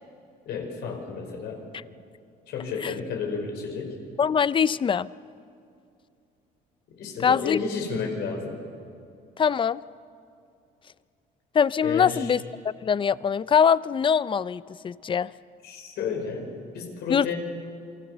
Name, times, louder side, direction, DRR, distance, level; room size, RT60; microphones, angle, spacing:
voice 1, 0.5-1.6 2.5-4.0 6.9-8.6 11.8-12.4 15.6-17.4, left 5 dB, 75° left, 3 dB, 5.4 m, -32 dB
voice 2, 4.2-5.1 7.2-7.6 9.4-9.8 11.5-15.3 17.1-17.3, left 7 dB, 30° left, 18 dB, 0.5 m, -23 dB
29.0 x 23.5 x 6.8 m, 2.5 s
cardioid pair, 110°, 17 cm